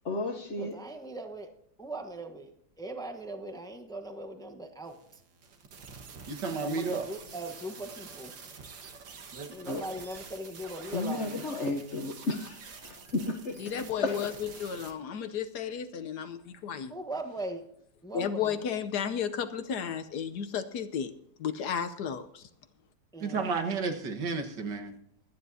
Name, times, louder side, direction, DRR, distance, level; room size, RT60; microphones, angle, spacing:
voice 1, 0.0-0.8 9.7-9.8 10.9-13.6 14.0-14.2, left 2 dB, 45° left, 1.1 m, -33 dB
voice 2, 0.6-1.5 1.8-5.2 6.6-8.3 9.5-11.5 16.9-17.7 18.0-18.6 23.1-23.5, right 1 dB, 5° left, 0.8 m, -40 dB
sound 1, 4.8-14.9, right 5 dB, 85° right, 2.2 m, -47 dB
voice 3, 6.3-7.0 9.3-9.5 23.2-24.9, right 4 dB, 70° right, 2.1 m, -32 dB
voice 4, 13.6-16.9 18.1-21.1 21.4-22.4, left 7 dB, 70° left, 1.3 m, -33 dB
24.5 x 9.8 x 2.8 m
omnidirectional pair, 2.0 m